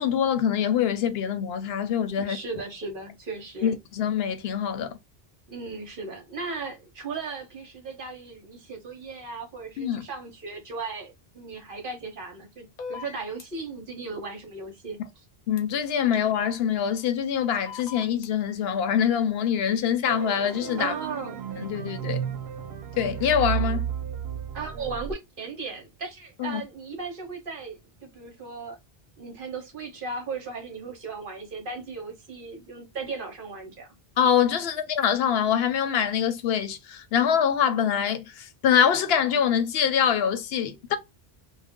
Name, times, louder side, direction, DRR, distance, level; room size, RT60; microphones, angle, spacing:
voice 1, 0.0-2.4 3.6-5.0 9.8-10.1 15.5-20.9 21.6-22.2 23.0-23.9 26.4-26.6 34.2-41.0, left 8 dB, 75° left, 0.8 m, -24 dB
voice 2, 2.2-3.7 5.5-15.0 20.8-21.4 24.5-28.8 29.2-33.9, right 4 dB, 60° right, 1.0 m, -36 dB
sound 1, 12.8-13.4 15.6-15.7 17.7-18.3, left 5 dB, 50° left, 0.7 m, -38 dB
sound 2, 20.1-25.1, right 9 dB, 85° right, 0.8 m, -32 dB
2.5 x 2.1 x 3.5 m
omnidirectional pair, 1.1 m